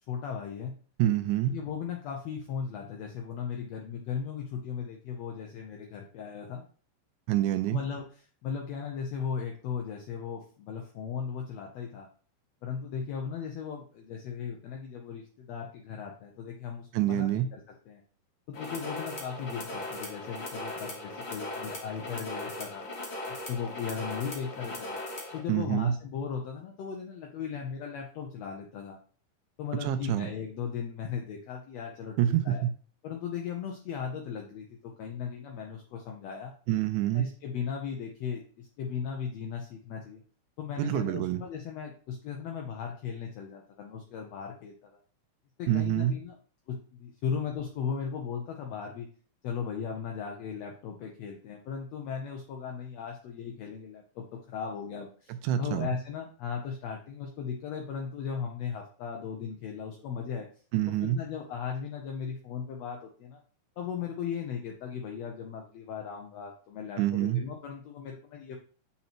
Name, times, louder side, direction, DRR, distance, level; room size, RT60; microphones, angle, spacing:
voice 1, 0.1-0.7 1.5-6.6 7.7-8.0 8.4-12.1 12.6-17.6 17.9-18.0 18.5-22.8 23.3-25.0 25.3-29.0 29.6-32.6 33.0-36.5 37.1-40.2 40.6-45.0 45.6-46.4 46.7-49.1 49.4-60.5 61.0-63.4 63.8-68.6, left 7 dB, 75° left, 1 dB, 1.6 m, -37 dB
voice 2, 1.0-1.6 7.3-7.8 16.9-17.5 25.5-25.9 29.8-30.3 32.2-32.7 36.7-37.3 40.8-41.4 45.7-46.2 55.3-55.9 60.7-61.2 67.0-67.4, right 12 dB, 80° right, 10 dB, 1.8 m, -27 dB
sound 1, 18.5-25.4, left 1 dB, 50° left, 1.3 m, -38 dB
7.6 x 4.2 x 2.9 m, 0.43 s
omnidirectional pair, 3.9 m